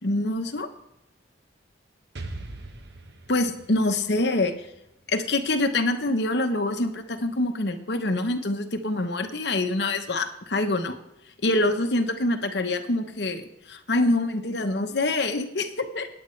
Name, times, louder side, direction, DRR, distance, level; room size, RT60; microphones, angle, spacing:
voice 1, 0.0-0.7 3.3-4.5 5.1-11.0 11.4-16.1, left 2 dB, 65° left, 7 dB, 1.0 m, -25 dB
Explosion, 2.2-5.9, right 2 dB, 60° right, 1.1 m, -42 dB
18.0 x 8.9 x 3.2 m, 0.86 s
head